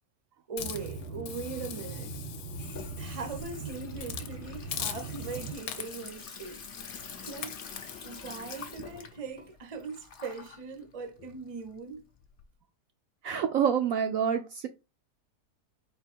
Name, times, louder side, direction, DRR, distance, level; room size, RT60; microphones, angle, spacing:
voice 1, 0.5-2.2 3.0-6.6 7.2-7.5 8.0-12.1, right 4 dB, 35° right, 0.5 m, -40 dB
Hiss, 0.6-3.5 4.0-4.3 4.7-5.3 5.7-6.1 6.8-7.1 7.4-7.9, left 9 dB, 70° left, 1.1 m, -41 dB
sound 1, 0.6-5.5, right 4 dB, 85° right, 1.9 m, -41 dB
Water tap faucet / Sink (filling or washing), 0.7-12.4, left 6 dB, 50° left, 0.7 m, -46 dB
voice 2, 13.2-14.7, right 8 dB, 70° right, 0.8 m, -27 dB
4.5 x 2.6 x 4.3 m
omnidirectional pair, 1.8 m